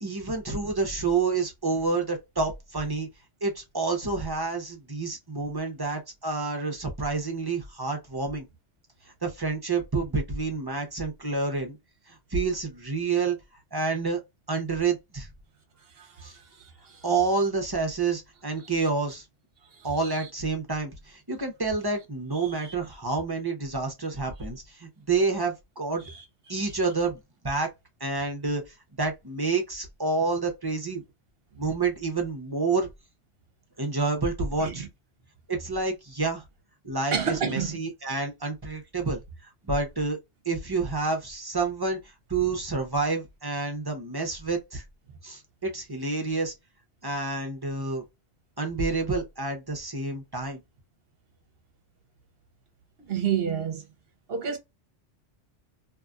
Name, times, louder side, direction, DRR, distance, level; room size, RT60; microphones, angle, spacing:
voice 1, 0.0-3.1 3.4-8.5 9.2-11.8 12.1-13.4 13.7-14.2 14.5-15.3 16.2-16.4 17.0-19.2 19.8-26.0 26.5-27.2 27.4-27.7 28.0-28.6 29.0-31.0 31.6-32.9 33.8-34.9 35.5-36.4 36.8-40.2 40.4-44.8 45.2-46.5 47.0-48.0 48.6-50.6, right 4 dB, 25° right, 0.6 m, -28 dB
voice 2, 16.0-16.3 16.9-17.0 20.1-20.2 22.6-22.7 26.1-26.2 34.6-34.9 37.1-37.8 53.1-53.8 54.3-54.6, right 8 dB, 55° right, 0.9 m, -29 dB
2.8 x 2.4 x 2.3 m
omnidirectional pair, 1.2 m